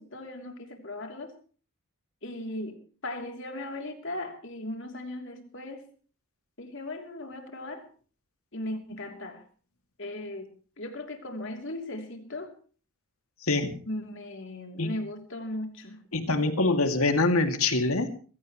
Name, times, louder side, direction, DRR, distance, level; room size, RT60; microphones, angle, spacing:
voice 1, 0.0-1.3 2.2-5.9 6.6-7.9 8.5-9.4 10.0-12.5 13.8-16.0, left 1 dB, 60° left, 4 dB, 3.1 m, -38 dB
voice 2, 13.4-13.8 14.8-14.9 16.1-18.1, left 2 dB, 80° left, 7 dB, 2.4 m, -24 dB
22.0 x 16.0 x 3.1 m, 0.40 s
head